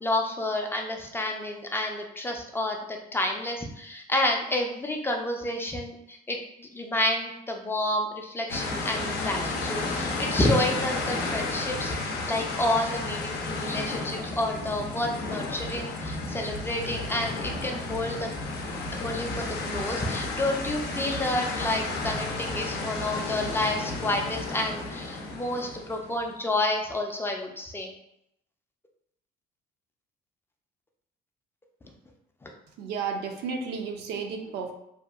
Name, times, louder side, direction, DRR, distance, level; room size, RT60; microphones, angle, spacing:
voice 1, 0.0-12.0 12.3-18.3 18.9-27.9 32.4-32.5, left 1 dB, 15° left, 2 dB, 0.4 m, -29 dB
sound 1, 8.5-26.3, left 3 dB, 75° left, 0.5 m, -32 dB
voice 2, 32.8-34.7, right 5 dB, 75° right, 4 dB, 0.4 m, -32 dB
2.7 x 2.4 x 2.3 m, 0.78 s
cardioid pair, 110°, 17 cm